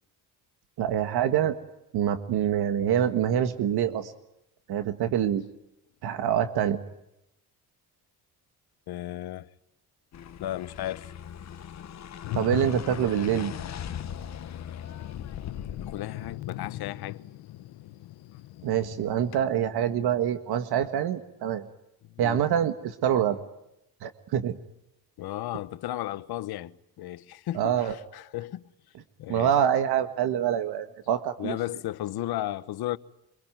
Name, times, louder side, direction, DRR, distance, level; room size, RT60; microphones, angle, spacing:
voice 1, 0.8-1.6 1.9-4.1 4.7-5.4 6.0-6.8 12.3-13.5 18.6-21.6 22.2-23.4 24.0-24.6 27.5-28.0 29.3-31.6, right 9 dB, 80° right, 1.7 m, -25 dB
voice 2, 8.9-9.5 10.4-11.1 15.8-17.2 22.1-22.4 25.2-28.6 29.2-29.5 31.4-33.0, left 14 dB, 75° left, 1.2 m, -34 dB
sound 1, 10.1-16.4, left 9 dB, 45° left, 1.3 m, -40 dB
Thunder, 12.2-19.4, left 15 dB, 90° left, 0.9 m, -39 dB
26.0 x 23.5 x 9.2 m
cardioid pair, 140°, 38 cm